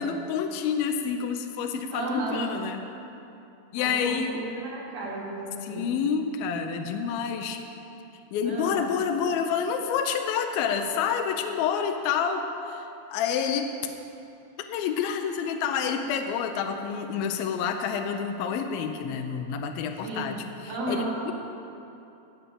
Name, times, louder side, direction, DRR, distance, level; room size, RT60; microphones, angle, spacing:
voice 1, 0.0-2.8 3.7-4.4 5.6-7.6 8.3-13.8 14.7-21.3, left 7 dB, 75° left, 5 dB, 2.3 m, -28 dB
voice 2, 1.9-2.5 3.7-5.9 8.4-8.8 20.0-20.3 20.7-21.2, right 1 dB, 70° right, -7 dB, 5.0 m, -33 dB
15.5 x 6.2 x 8.6 m, 2.8 s
omnidirectional pair, 4.7 m